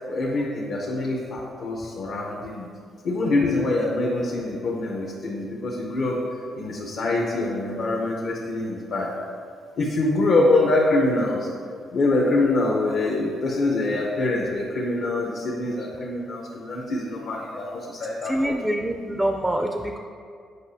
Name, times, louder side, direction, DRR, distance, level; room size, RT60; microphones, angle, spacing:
voice 1, 0.1-2.7 3.0-6.2 6.5-9.1 9.8-11.5 11.9-18.5, left 2 dB, 60° left, -3 dB, 0.8 m, -24 dB
voice 2, 18.2-20.0, right 1 dB, 5° right, 3 dB, 0.4 m, -25 dB
8.0 x 5.3 x 2.7 m, 2.3 s
cardioid pair, 90°, 0 cm